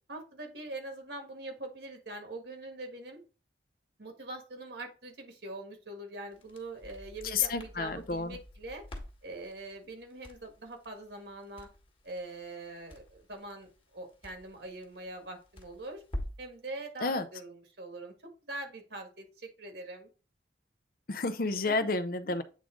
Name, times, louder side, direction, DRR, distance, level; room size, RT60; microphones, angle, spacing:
voice 1, 0.1-3.2 4.0-8.8 9.2-11.7 12.0-16.0 16.4-18.1 18.4-20.1 21.6-21.9 22.2-22.4, right 2 dB, 65° right, 1.7 m, -43 dB
Crackle, 6.3-16.5, left 1 dB, 30° left, 1.4 m, -47 dB
voice 2, 7.2-8.4 17.0-17.3 21.1-22.4, left 3 dB, 50° left, 0.6 m, -30 dB
8.4 x 3.7 x 3.7 m
head